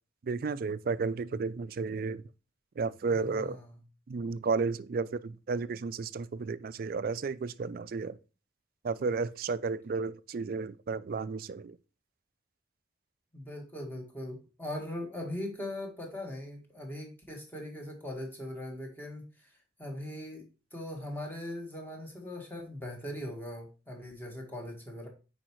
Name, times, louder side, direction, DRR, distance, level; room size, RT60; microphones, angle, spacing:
voice 1, 0.2-2.2 2.8-3.6 4.1-8.2 8.8-11.8, right 4 dB, 50° right, 0.4 m, -33 dB
voice 2, 3.1-3.7 13.3-20.4 20.7-25.1, left 1 dB, 10° left, 1.6 m, -40 dB
8.9 x 4.7 x 3.1 m
head